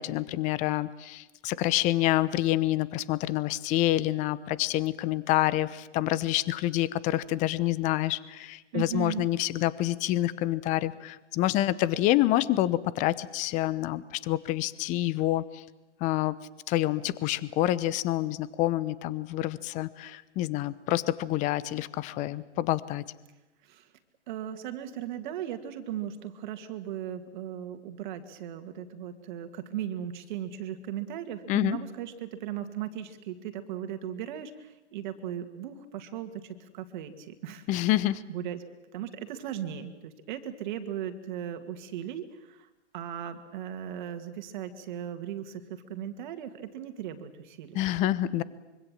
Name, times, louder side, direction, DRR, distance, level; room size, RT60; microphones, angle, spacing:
voice 1, 0.0-15.6 16.0-16.3 16.7-23.0 31.5-31.8 37.7-38.2 47.7-48.4, left 15 dB, 20° left, 18 dB, 0.9 m, -27 dB
voice 2, 8.7-9.3 23.6-23.9 24.3-37.7 38.3-38.6 38.9-42.7 42.9-47.8, right 10 dB, 40° right, 8 dB, 2.4 m, -37 dB
25.5 x 24.5 x 7.7 m, 1.0 s
hypercardioid pair, 130°, 35 cm